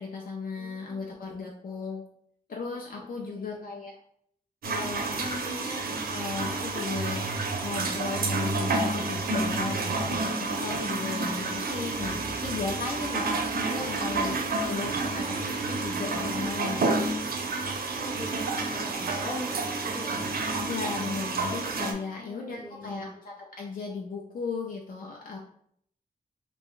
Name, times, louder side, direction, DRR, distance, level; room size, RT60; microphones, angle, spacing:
voice 1, 0.0-2.0 2.5-3.9 4.6-17.0 20.6-25.4, left 4 dB, 70° left, -1 dB, 0.4 m, -36 dB
voice 2, 0.6-1.2 3.0-3.7 13.3-13.4 18.0-20.3 22.2-23.1, equal, 30° left, -6 dB, 0.8 m, -42 dB
sound 1, 4.6-21.9, right 3 dB, 85° right, 0.4 m, -30 dB
2.5 x 2.1 x 3.7 m, 0.67 s
wide cardioid pair, 100°, 15 cm